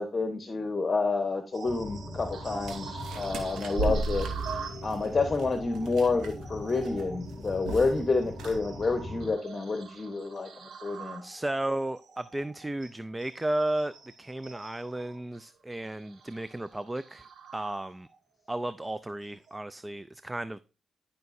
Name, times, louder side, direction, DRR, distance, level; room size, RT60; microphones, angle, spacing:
voice 1, 0.0-4.3 4.8-10.5 10.8-11.2, left 3 dB, 35° left, 1.1 m, -29 dB
sound 1, 1.5-18.2 18.6-18.8 19.4-19.6, right 5 dB, 70° right, 1.5 m, -46 dB
sound 2, 1.6-9.3, left 1 dB, 5° left, 2.7 m, -41 dB
sound 3, 2.6-6.4 6.7-7.0 7.3-8.0 8.3-8.5, right 3 dB, 85° right, 1.9 m, -34 dB
voice 2, 11.2-17.3 17.5-18.1 18.5-20.6, right 1 dB, 15° right, 0.4 m, -34 dB
12.5 x 5.7 x 2.7 m
cardioid pair, 75°, 0 cm